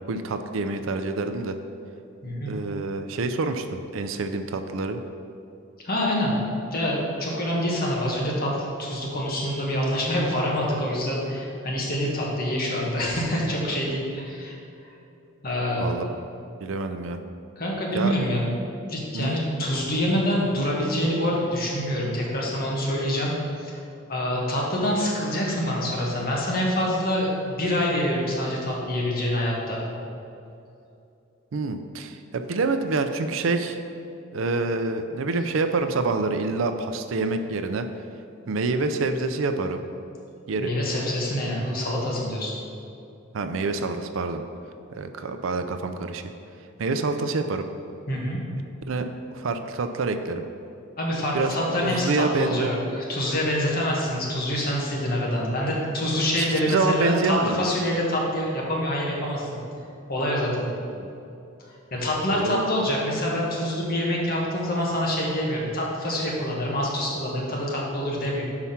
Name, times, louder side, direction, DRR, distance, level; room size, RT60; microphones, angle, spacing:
voice 1, 0.1-1.6 2.5-5.0 15.8-16.1 16.6-17.2 17.9-18.1 19.1-19.4 31.5-33.8 34.3-37.9 38.5-39.8 40.5-40.7 43.3-44.4 45.0-46.2 46.8-47.7 48.9-50.5 51.3-51.5 51.8-52.7 56.4-57.7 60.9-61.1 62.3-62.9, right 3 dB, 70° right, 7 dB, 0.4 m, -27 dB
voice 2, 2.2-2.5 5.8-6.3 6.7-14.6 15.4-15.9 17.6-18.5 18.9-23.3 23.6-23.8 24.1-29.8 40.6-42.5 46.8-46.9 48.1-48.4 51.0-59.5 60.1-60.6 61.9-68.4, equal, 50° left, -3 dB, 1.4 m, -26 dB
5.7 x 4.8 x 5.7 m, 2.7 s
head